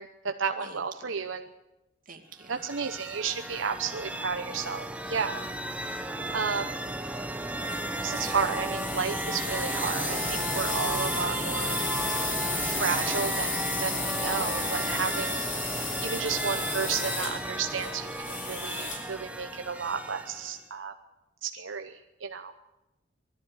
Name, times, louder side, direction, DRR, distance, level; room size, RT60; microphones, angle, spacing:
voice 1, 0.0-1.5 2.5-5.4 5.8-5.9 6.3-6.7 8.0-11.8 12.6-15.4 16.0-20.9 21.4-22.5, right 6 dB, 80° right, 6 dB, 0.9 m, -32 dB
voice 2, 0.6-1.1 2.1-2.6 15.9-16.3, right 4 dB, 45° right, 3 dB, 2.5 m, -49 dB
sound 1, 2.4-20.6, right 1 dB, 5° right, 1.0 m, -34 dB
sound 2, 7.6-19.1, left 3 dB, 45° left, 5.2 m, -34 dB
20.5 x 13.5 x 9.8 m, 0.96 s
head